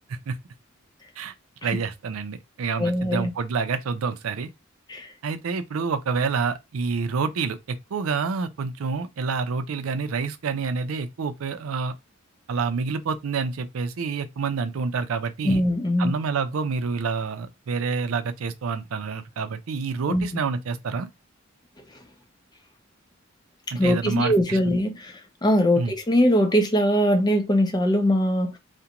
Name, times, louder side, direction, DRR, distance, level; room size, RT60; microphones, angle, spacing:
voice 1, 1.6-4.5 5.2-11.9 12.5-15.6 16.0-21.1 23.7-24.6 25.8-25.9, right 5 dB, 85° right, 0.5 m, -28 dB
voice 2, 2.8-3.3 4.9-5.1 15.4-16.1 20.1-20.3 23.8-25.1 25.4-28.6, equal, 20° left, 0.4 m, -21 dB
2.4 x 2.1 x 2.8 m
head